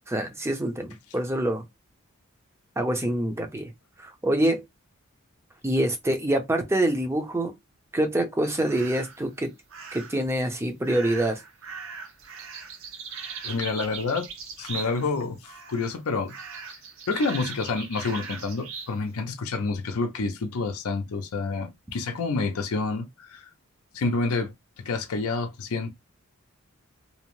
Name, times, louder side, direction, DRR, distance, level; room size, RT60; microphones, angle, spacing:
voice 1, 0.1-1.6 2.8-3.7 4.0-4.6 5.6-7.5 7.9-9.5 9.9-11.4, right 1 dB, 10° right, 0.5 m, -25 dB
sound 1, 8.7-9.2 9.7-10.3 10.8-15.2 15.4-16.0 16.3-18.9, right 5 dB, 60° right, 0.6 m, -39 dB
voice 2, 13.4-14.3 14.6-16.3 17.1-23.5 23.9-24.5 24.8-25.9, left 3 dB, 75° left, 0.5 m, -28 dB
2.7 x 2.0 x 2.9 m
head